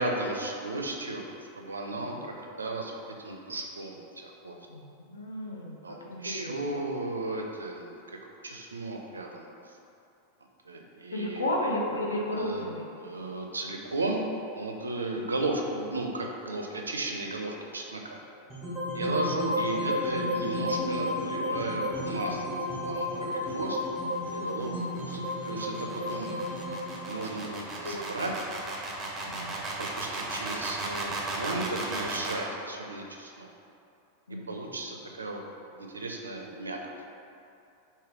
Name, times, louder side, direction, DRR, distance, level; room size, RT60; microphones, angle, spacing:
voice 1, 0.0-2.9 3.2-4.6 5.8-9.8 10.6-11.5 12.3-12.7 13.0-14.2 14.5-18.2 18.9-22.6 22.8-23.8 24.3-26.3 27.1-28.3 29.8-33.5 34.5-36.8, right 2 dB, 75° right, 1 dB, 0.4 m, -35 dB
voice 2, 1.9-2.3 4.7-6.8 11.1-12.9 15.1-15.2 24.6-25.0 27.8-28.0 29.2-29.5 34.3-34.6, left 1 dB, 75° left, -2 dB, 0.5 m, -34 dB
sound 1, 18.5-28.7, left 1 dB, ahead, 1.2 m, -32 dB
sound 2, 23.2-32.4, right 2 dB, 20° right, 0.6 m, -36 dB
3.2 x 2.7 x 3.6 m, 2.6 s
figure-of-eight pair, 90°, 0 cm